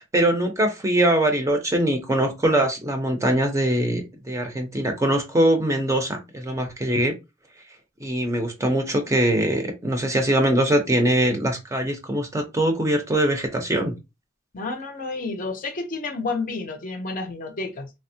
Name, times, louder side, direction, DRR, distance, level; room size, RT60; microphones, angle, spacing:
voice 1, 0.0-7.1 8.0-14.0, right 1 dB, 15° right, 0.5 m, -22 dB
voice 2, 14.5-17.9, left 3 dB, 45° left, 0.6 m, -30 dB
3.4 x 2.0 x 2.6 m
head